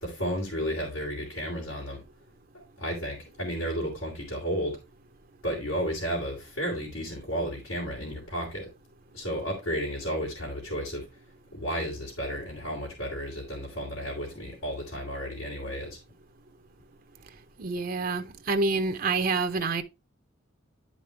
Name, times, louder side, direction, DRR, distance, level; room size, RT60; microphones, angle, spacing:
voice 1, 0.0-2.0 2.5-4.8 5.4-8.7 9.1-11.1 11.5-16.0, equal, 85° left, 3.2 m, -33 dB
voice 2, 17.6-19.8, right 3 dB, 45° right, 0.6 m, -27 dB
11.0 x 5.2 x 3.3 m
head